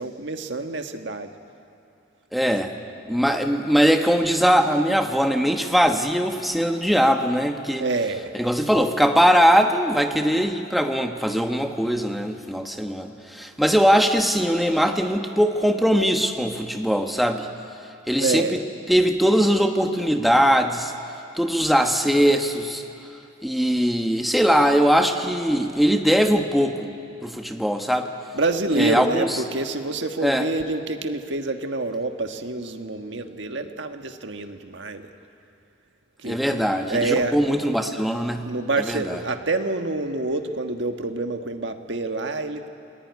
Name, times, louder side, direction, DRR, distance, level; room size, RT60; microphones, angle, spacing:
voice 1, 0.0-1.3 7.8-8.3 18.2-18.6 28.3-35.1 36.2-36.6 36.9-37.4 38.4-42.7, right 2 dB, 60° right, 6 dB, 1.5 m, -27 dB
voice 2, 2.3-2.7 3.1-7.8 8.3-17.5 18.1-18.6 18.9-20.9 21.4-22.8 23.4-26.9 27.2-28.1 28.7-29.3 30.2-30.5 36.2-38.5 38.8-39.2, equal, ahead, 4 dB, 1.3 m, -21 dB
28.5 x 20.0 x 9.5 m, 2.6 s
head